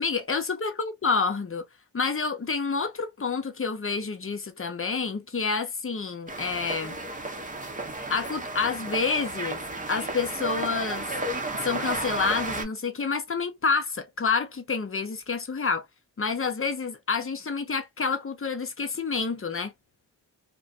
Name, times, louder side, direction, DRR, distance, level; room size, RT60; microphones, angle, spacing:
voice 1, 0.0-1.7 1.9-7.0 8.1-9.6 9.9-11.1 11.5-15.9 16.2-19.7, left 4 dB, 30° left, 0.8 m, -28 dB
sound 1, 6.3-12.6, right 2 dB, 20° right, 0.8 m, -33 dB
2.5 x 2.2 x 2.4 m
supercardioid pair, 40°, 41 cm